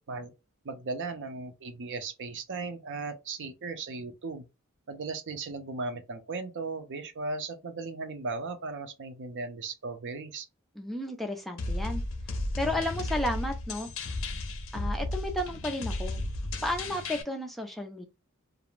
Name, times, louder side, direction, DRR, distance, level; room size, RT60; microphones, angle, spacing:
voice 1, 0.6-4.5 4.9-10.5, right 3 dB, 55° right, 0.5 m, -37 dB
voice 2, 10.8-12.0 12.6-14.1 14.7-16.2 16.6-18.1, left 1 dB, ahead, 0.3 m, -33 dB
sound 1, 11.6-17.2, left 2 dB, 65° left, 0.6 m, -34 dB
2.4 x 2.0 x 3.0 m
head